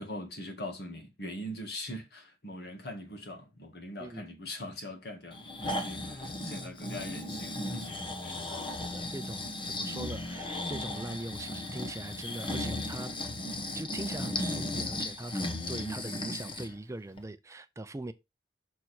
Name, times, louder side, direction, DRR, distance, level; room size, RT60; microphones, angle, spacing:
voice 1, 0.0-8.5 9.6-9.7, left 1 dB, 60° left, 1.9 m, -42 dB
Breathing, 5.3-16.7 17.2-17.3, left 1 dB, 30° left, 1.1 m, -36 dB
voice 2, 8.4-13.1 13.7-18.1, right 2 dB, 15° right, 0.4 m, -41 dB
6.4 x 4.5 x 4.3 m
head